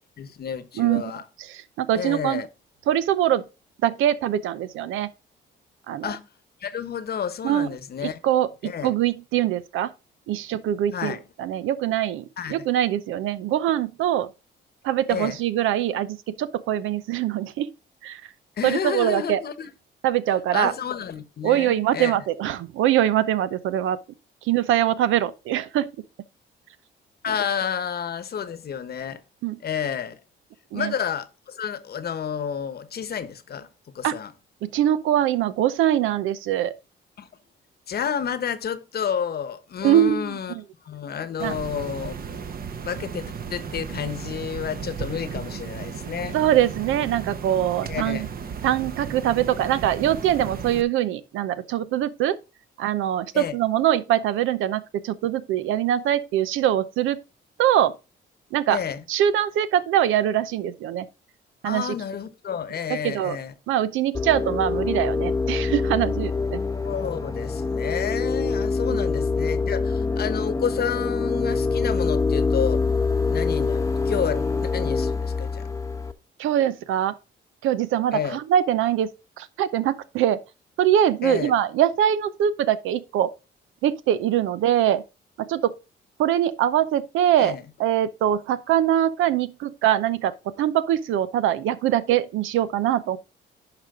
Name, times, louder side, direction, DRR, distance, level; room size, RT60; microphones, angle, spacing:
voice 1, 0.0-1.2 1.9-2.5 6.0-6.3 6.6-8.2 8.6-8.9 10.9-11.2 12.4-12.6 15.1-15.4 18.6-19.7 20.5-22.2 27.2-29.2 29.6-30.2 30.7-33.7 33.9-34.3 37.2-37.3 37.9-40.6 40.8-42.5 42.8-46.4 47.9-48.3 53.3-53.5 58.7-59.0 61.6-63.5 66.8-72.8 73.3-75.7 78.1-78.4 81.2-81.5 87.4-87.6, left 8 dB, 50° left, 1.0 m, -30 dB
voice 2, 0.8-1.1 1.4-2.4 2.9-3.4 3.8-5.1 5.9-6.1 7.4-7.7 8.0-9.9 10.3-14.3 14.8-17.7 18.0-18.2 18.6-19.4 20.0-20.7 21.4-24.0 24.4-25.9 27.3-27.4 29.4-29.6 30.7-30.9 34.0-34.1 34.6-36.7 39.8-40.6 41.4-41.5 46.3-48.3 48.6-52.4 52.8-57.2 57.6-57.9 58.5-58.8 59.1-61.1 61.6-61.9 62.9-63.4 63.7-66.6 76.4-77.1 77.6-79.1 79.4-80.4 80.8-83.3 83.8-85.0 85.4-85.7 86.2-93.2, right 11 dB, 85° right, 0.7 m, -23 dB
sound 1, 41.4-50.8, right 6 dB, 50° right, 1.0 m, -35 dB
sound 2, 64.1-76.1, left 4 dB, 15° left, 0.9 m, -25 dB
10.5 x 5.1 x 3.7 m
cardioid pair, 90°, 20 cm